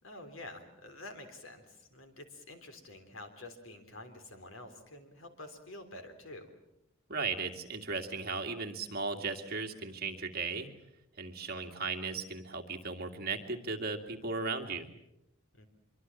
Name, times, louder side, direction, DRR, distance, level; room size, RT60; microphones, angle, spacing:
voice 1, 0.0-6.5 15.5-15.7, left 2 dB, 70° left, 8 dB, 3.7 m, -48 dB
voice 2, 7.1-10.7 11.2-14.9, right 4 dB, 50° right, 4 dB, 2.4 m, -36 dB
24.5 x 24.0 x 7.4 m, 0.84 s
head